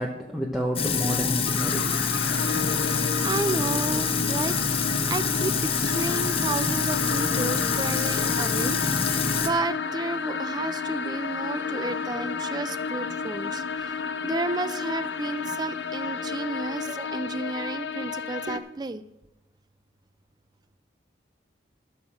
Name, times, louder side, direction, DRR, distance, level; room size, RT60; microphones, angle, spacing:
voice 1, 0.0-1.9, equal, ahead, -2 dB, 1.0 m, -30 dB
Sink (filling or washing), 0.8-9.5, left 5 dB, 30° left, 0.8 m, -26 dB
sound 1, 1.5-18.6, left 5 dB, 70° left, 0.7 m, -32 dB
voice 2, 3.2-4.6 4.8-8.8 9.1-14.0 14.2-19.0, right 2 dB, 20° right, 14 dB, 0.4 m, -32 dB
13.5 x 6.1 x 6.3 m, 0.93 s
head